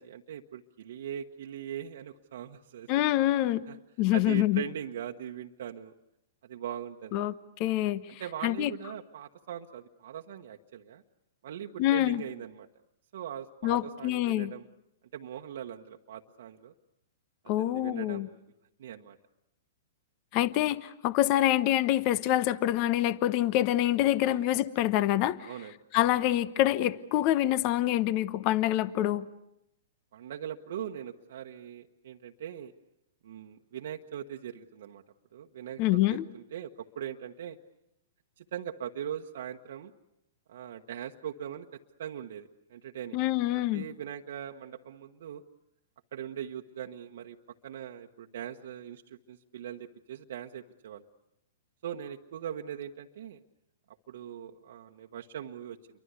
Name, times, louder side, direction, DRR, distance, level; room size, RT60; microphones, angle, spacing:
voice 1, 0.0-2.9 3.7-3.8 4.1-5.9 6.4-7.3 8.2-11.0 11.4-12.7 13.1-14.6 15.1-16.7 17.6-18.4 18.8-19.2 21.3-21.4 24.3-24.4 25.4-25.8 30.1-32.7 33.2-35.0 35.3-37.6 38.4-39.9 40.5-43.3 43.5-45.4 46.1-47.4 47.6-51.0 51.8-53.4 54.1-55.8, right 9 dB, 65° right, 2 dB, 1.2 m, -41 dB
voice 2, 2.9-3.7 4.0-4.6 7.1-7.3 7.6-8.7 11.8-12.2 13.6-14.5 17.5-18.3 20.3-25.5 25.9-29.3 35.8-36.2 43.1-43.8, left 14 dB, 45° left, 16 dB, 1.0 m, -26 dB
29.0 x 24.0 x 8.3 m, 0.84 s
hypercardioid pair, 115°, 0 cm